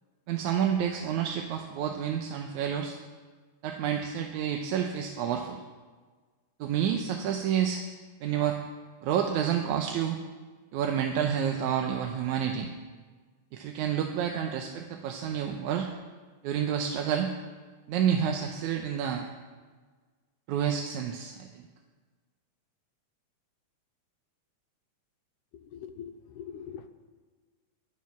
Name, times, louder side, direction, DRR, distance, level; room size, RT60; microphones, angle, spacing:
voice 1, 0.3-3.0 3.6-5.6 6.6-7.8 8.2-8.6 9.0-10.2 10.7-12.7 13.5-15.9 16.4-17.3 17.9-19.3 20.5-21.6, right 8 dB, 80° right, 3 dB, 2.1 m, -29 dB
voice 2, 25.7-26.9, left 8 dB, 85° left, 8 dB, 2.3 m, -42 dB
22.0 x 7.5 x 5.9 m, 1.4 s
omnidirectional pair, 3.5 m